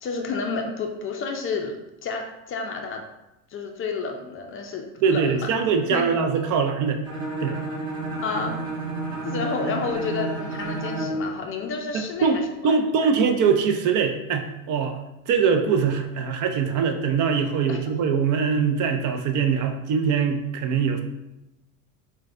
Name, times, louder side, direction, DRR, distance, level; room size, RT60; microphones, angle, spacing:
voice 1, 0.0-3.0 3.5-5.5 5.9-6.1 8.2-8.6 9.2-12.4 17.7-17.8, left 4 dB, 30° left, 3 dB, 0.4 m, -30 dB
voice 2, 5.0-7.0 7.4-7.6 11.9-15.0 15.3-21.0, right 6 dB, 50° right, 5 dB, 0.5 m, -22 dB
Bowed string instrument, 7.0-11.3, right 2 dB, 10° right, 1.2 m, -30 dB
4.6 x 2.2 x 2.4 m, 0.91 s
supercardioid pair, 90°, 41 cm